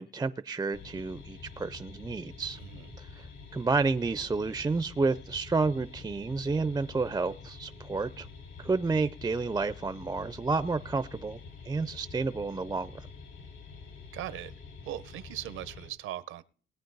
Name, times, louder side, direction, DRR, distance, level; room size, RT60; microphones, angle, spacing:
voice 1, 0.0-2.6 3.0-3.3 3.5-8.3 8.6-11.4 11.7-13.1, right 4 dB, 20° right, 12 dB, 0.5 m, -30 dB
sound 1, 0.7-15.9, left 4 dB, 65° left, 5.0 m, -47 dB
voice 2, 2.5-2.9 14.1-14.5 14.8-16.4, right 12 dB, 85° right, 14 dB, 0.8 m, -39 dB
19.5 x 9.1 x 4.0 m, 0.43 s
cardioid pair, 90°, 20 cm